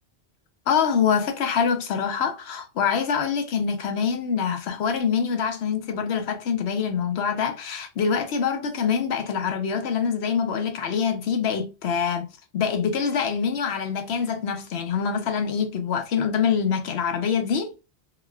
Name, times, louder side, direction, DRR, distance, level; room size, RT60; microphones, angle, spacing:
voice 1, 0.7-12.3 12.5-17.7, left 6 dB, 80° left, 1.0 m, -25 dB
3.5 x 2.3 x 3.2 m
omnidirectional pair, 1.1 m